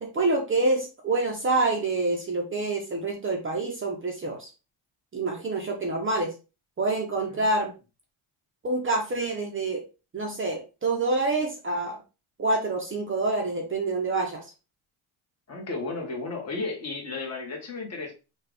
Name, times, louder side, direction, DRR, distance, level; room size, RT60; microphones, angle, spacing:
voice 1, 0.0-4.5 5.1-6.3 6.8-7.7 8.6-9.8 10.1-12.0 12.4-14.4, right 2 dB, 25° right, 0.7 m, -27 dB
voice 2, 15.5-18.1, left 3 dB, 30° left, 1.4 m, -34 dB
5.8 x 2.4 x 3.4 m
cardioid pair, 175°, 49 cm